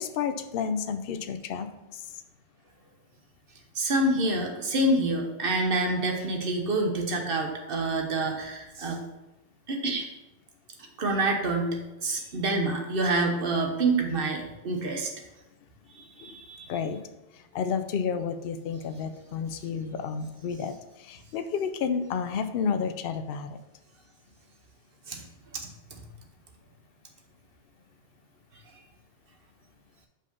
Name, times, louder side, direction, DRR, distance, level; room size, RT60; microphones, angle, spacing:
voice 1, 0.0-2.2 16.2-16.4 16.7-17.0 17.3-23.6, left 6 dB, 60° left, 9 dB, 0.7 m, -31 dB
voice 2, 3.7-9.0 9.7-10.0 11.0-15.1 15.9-16.7 25.1-25.2 25.9-26.0, right 2 dB, 55° right, 3 dB, 1.3 m, -27 dB
5.4 x 5.1 x 5.3 m, 0.97 s
omnidirectional pair, 1.2 m